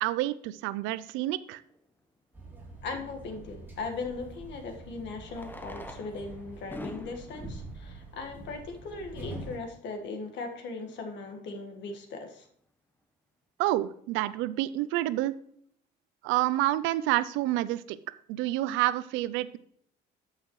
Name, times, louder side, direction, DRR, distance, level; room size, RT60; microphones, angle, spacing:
voice 1, 0.0-1.6 13.6-15.3 16.2-18.0 18.3-19.6, right 15 dB, 80° right, 16 dB, 0.5 m, -28 dB
Fireworks, 1.7-1.8 4.1-4.2 5.2-9.0 9.7-9.8 10.0-10.1 10.3-10.4 11.0-11.2, left 1 dB, 10° left, 1.0 m, -45 dB
sound 1, 2.3-9.6, right 2 dB, 10° right, 3.2 m, -45 dB
voice 2, 2.8-12.5, left 3 dB, 65° left, 4 dB, 1.6 m, -38 dB
13.0 x 5.7 x 3.1 m, 0.66 s
supercardioid pair, 85°, 20 cm